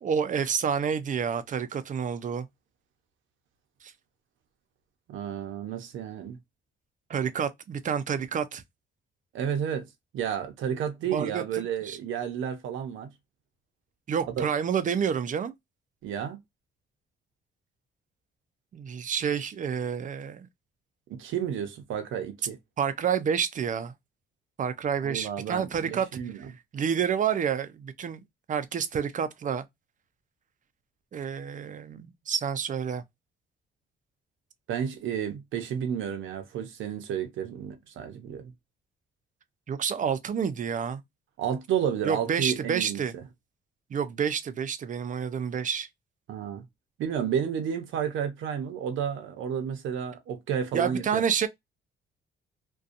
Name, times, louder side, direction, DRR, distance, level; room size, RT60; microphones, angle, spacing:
voice 1, 0.0-2.5 3.8-3.9 7.1-8.6 11.1-12.0 14.1-15.5 18.7-20.5 22.8-23.9 24.6-26.1 26.7-28.2 28.5-29.6 31.1-33.0 39.7-41.0 42.0-43.1 43.9-45.9 50.7-51.5, right 7 dB, 40° right, 0.5 m, -29 dB
voice 2, 5.1-6.4 9.3-9.9 10.1-13.1 14.2-14.5 16.0-16.4 21.1-22.6 25.0-26.5 34.7-38.5 41.4-43.2 46.3-46.6 47.0-51.2, right 8 dB, 75° right, 0.7 m, -31 dB
2.6 x 2.3 x 2.4 m
cardioid pair, 90°, 20 cm